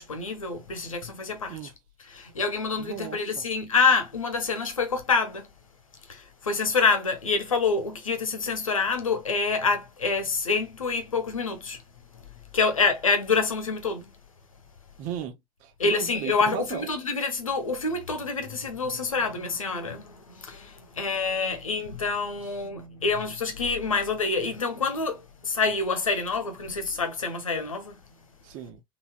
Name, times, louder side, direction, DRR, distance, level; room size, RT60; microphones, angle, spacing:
voice 1, 0.0-1.6 2.1-5.5 6.1-11.8 12.1-12.2 12.5-14.1 15.8-28.0, left 4 dB, 80° left, 1.0 m, -27 dB
voice 2, 2.8-3.4 15.0-16.9 28.4-28.8, right 10 dB, 50° right, 1.2 m, -36 dB
4.0 x 3.8 x 2.3 m
figure-of-eight pair, 70°, 17 cm